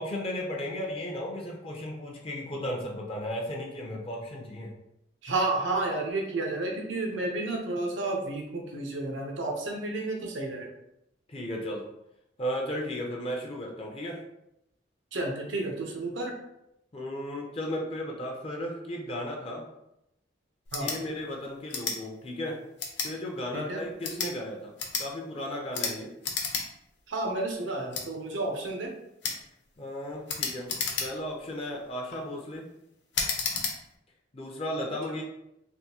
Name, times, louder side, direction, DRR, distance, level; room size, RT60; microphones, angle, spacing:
voice 1, 0.0-4.7 11.3-11.9 12.4-14.2 16.9-19.6 20.8-22.6 23.0-26.1 29.8-30.7 31.0-32.7 34.3-35.2, left 1 dB, 30° left, -1 dB, 0.4 m, -35 dB
voice 2, 5.2-10.7 15.1-16.4 20.7-20.9 23.5-23.8 27.1-28.9, right 2 dB, 85° right, 1 dB, 0.7 m, -31 dB
sound 1, 20.6-21.0 21.7-22.0 22.8-23.1 23.9-24.3 24.8-25.1 25.7-25.9 26.2-26.6 27.0-27.1 27.9-28.1 29.2-29.4 30.3-31.3 31.9-32.2 33.1-33.7, left 5 dB, 70° left, 0.7 m, -31 dB
3.5 x 2.5 x 2.8 m, 0.83 s
head